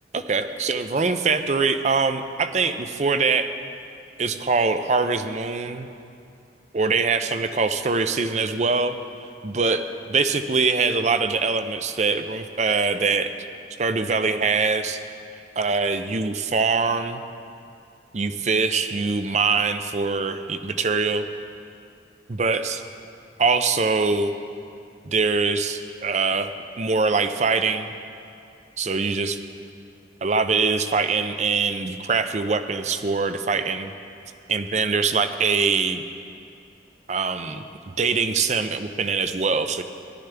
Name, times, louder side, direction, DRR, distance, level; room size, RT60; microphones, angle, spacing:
voice 1, 0.1-3.5 4.2-5.9 6.7-8.9 9.4-13.3 13.8-15.0 15.6-17.2 18.1-21.3 22.3-22.8 23.4-24.3 25.0-26.5 26.8-27.9 28.8-29.4 30.2-33.9 34.5-36.0 37.1-39.8, right 4 dB, 40° right, 9 dB, 0.5 m, -23 dB
17.0 x 11.5 x 3.4 m, 2.5 s
head